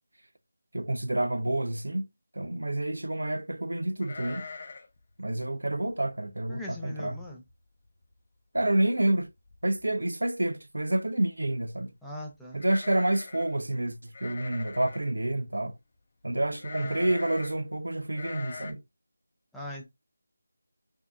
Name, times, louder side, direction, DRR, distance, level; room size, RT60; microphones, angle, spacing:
voice 1, 0.7-2.1 2.3-4.5 5.2-7.2 8.5-9.3 9.6-11.9 12.5-15.8 16.2-18.8, right 1 dB, 80° right, 0.6 m, -28 dB
sound 1, 4.0-5.0 5.2-5.3 5.8-6.1 6.6-6.7 7.0-7.5 7.8-7.9 9.1-9.2 9.5-9.9 12.5-13.6 14.1-15.1 16.6-17.6 18.1-18.7, left 4 dB, 40° left, 0.6 m, -42 dB
voice 2, 6.5-7.4 12.0-12.6 16.8-17.1 19.5-19.9, left 1 dB, ahead, 0.6 m, -41 dB
4.6 x 2.8 x 2.3 m
figure-of-eight pair, 165°, 0 cm